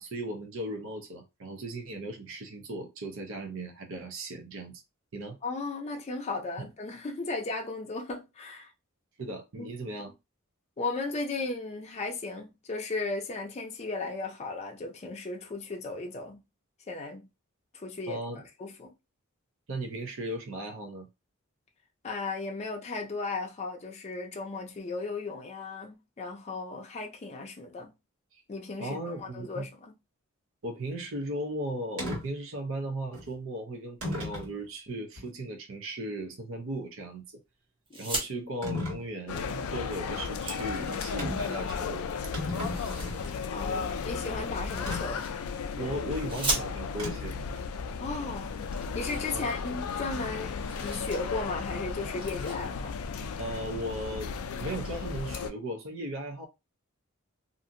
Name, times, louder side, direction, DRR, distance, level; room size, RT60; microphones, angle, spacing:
voice 1, 0.0-4.8 5.1-5.4 9.2-10.1 18.1-18.4 19.7-21.1 28.3-28.4 28.8-29.7 30.6-37.2 38.0-42.1 42.5-43.0 43.7-43.9 45.8-47.4 49.3-49.6 53.4-56.5, right 1 dB, 65° right, 0.6 m, -37 dB
voice 2, 5.4-8.7 9.6-9.7 10.8-16.4 16.9-17.3 17.7-18.2 18.6-18.9 22.0-27.9 28.5-29.9 37.9-38.0 43.5-45.2 48.0-53.0, left 3 dB, 30° left, 0.5 m, -36 dB
sound 1, 32.0-32.2 33.1-33.3 34.0-34.5 35.2-35.3 38.6-39.0 41.2-41.5 41.9-42.0 42.2-43.3 44.9-45.0 47.0-47.4, left 1 dB, 85° right, 1.6 m, -34 dB
sound 2, 37.9-38.3 39.6-39.7 40.0-41.4 42.5-43.4 44.7-45.6 46.2-47.1 48.0-48.1 48.3-48.4 48.7-50.0 50.3-51.2 51.5-51.7 52.1-52.6, right 2 dB, 25° right, 0.8 m, -37 dB
sound 3, 39.3-55.5, left 5 dB, 90° left, 0.4 m, -35 dB
2.7 x 2.5 x 2.5 m
head